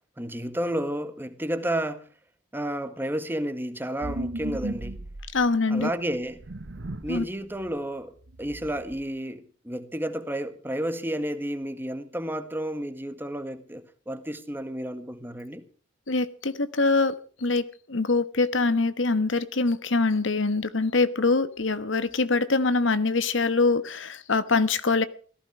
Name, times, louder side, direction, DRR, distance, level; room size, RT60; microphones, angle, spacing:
voice 1, 0.2-2.0 2.5-5.0 5.7-6.4 7.0-15.6, right 1 dB, 10° right, 1.6 m, -31 dB
sound 1, 4.0-5.6 6.2-7.2 7.6-7.7 8.2-9.0, right 1 dB, 70° right, 1.0 m, -36 dB
voice 2, 5.3-5.9 7.1-7.2 16.1-25.0, left 3 dB, 85° left, 1.3 m, -24 dB
17.5 x 15.0 x 4.8 m
head